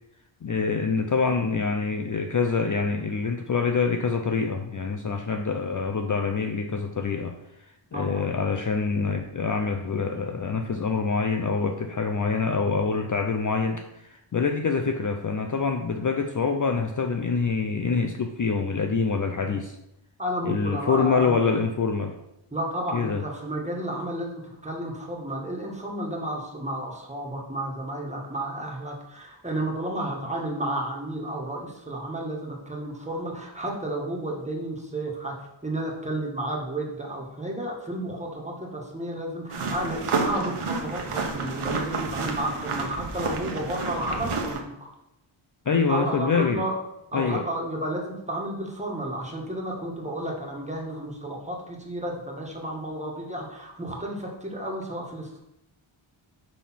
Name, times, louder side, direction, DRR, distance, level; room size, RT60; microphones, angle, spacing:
voice 1, 0.4-7.3 7.9-19.8 20.4-22.2 22.9-23.2 45.7-46.6 47.1-47.4, left 5 dB, 40° left, 5 dB, 0.5 m, -25 dB
voice 2, 7.9-8.2 20.2-21.4 22.5-35.3 35.6-44.7 45.9-46.8 47.1-55.4, right 1 dB, 15° right, -2 dB, 1.7 m, -32 dB
sound 1, 39.5-44.6, right 4 dB, 85° right, 1.1 m, -30 dB
6.6 x 3.6 x 5.8 m, 0.87 s
wide cardioid pair, 80°, 50 cm